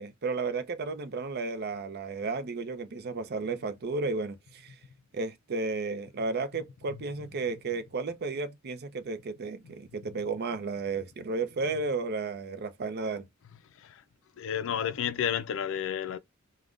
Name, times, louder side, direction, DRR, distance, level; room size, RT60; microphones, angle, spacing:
voice 1, 0.0-4.7 5.1-13.3, right 3 dB, 50° right, 0.5 m, -33 dB
voice 2, 14.4-16.2, left 9 dB, 65° left, 0.4 m, -31 dB
3.4 x 2.1 x 2.4 m
head